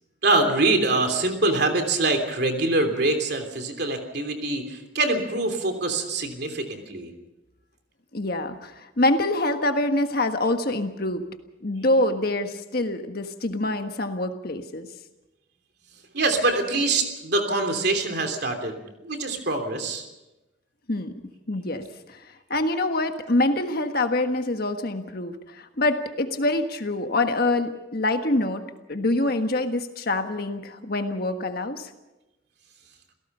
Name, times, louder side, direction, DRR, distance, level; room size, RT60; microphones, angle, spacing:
voice 1, 0.2-7.1 16.1-18.8 19.0-20.0, right 2 dB, 55° right, 6 dB, 3.2 m, -24 dB
voice 2, 8.1-11.2 11.6-14.9 20.9-21.1 21.5-21.8 22.1-22.2 22.5-31.9, left 2 dB, 50° left, 6 dB, 1.5 m, -25 dB
28.5 x 17.0 x 5.6 m, 1.0 s
head